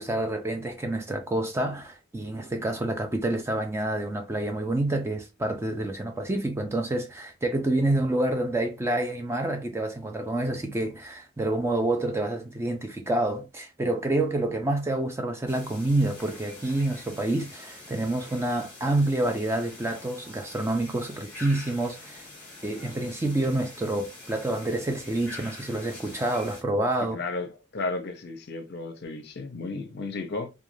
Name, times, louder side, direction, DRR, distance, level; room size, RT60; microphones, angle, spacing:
voice 1, 0.0-22.2 22.6-27.2, right 1 dB, 10° right, 0.3 m, -28 dB
sound 1, 15.5-26.6, left 2 dB, 10° left, 1.1 m, -45 dB
voice 2, 27.1-30.5, left 3 dB, 50° left, 0.5 m, -34 dB
2.3 x 2.2 x 3.1 m
head